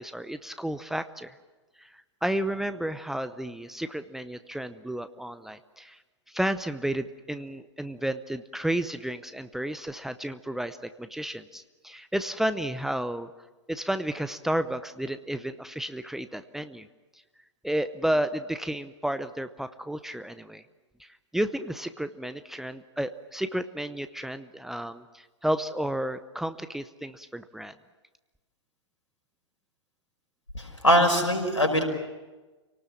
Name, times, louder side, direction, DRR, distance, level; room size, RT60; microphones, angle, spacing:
voice 1, 0.0-1.3 1.8-1.9 2.2-6.0 6.3-13.3 13.7-16.9 17.6-20.6 21.0-27.7, right 1 dB, ahead, 11 dB, 0.7 m, -32 dB
voice 2, 30.5-31.8, equal, 90° left, 4 dB, 5.3 m, -22 dB
27.5 x 18.5 x 7.4 m, 1.2 s
figure-of-eight pair, 115°, 15 cm